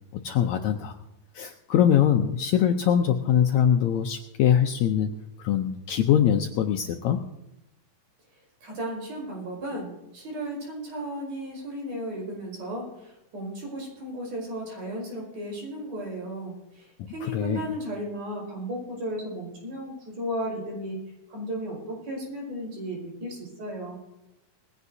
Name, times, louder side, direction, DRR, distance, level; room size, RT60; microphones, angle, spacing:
voice 1, 0.2-1.0 1.3-7.2 17.0-17.6, left 9 dB, 80° left, 5 dB, 1.7 m, -23 dB
voice 2, 8.3-21.0 21.3-24.0, equal, 70° right, -2 dB, 6.8 m, -35 dB
20.5 x 16.0 x 2.8 m, 0.91 s
omnidirectional pair, 3.9 m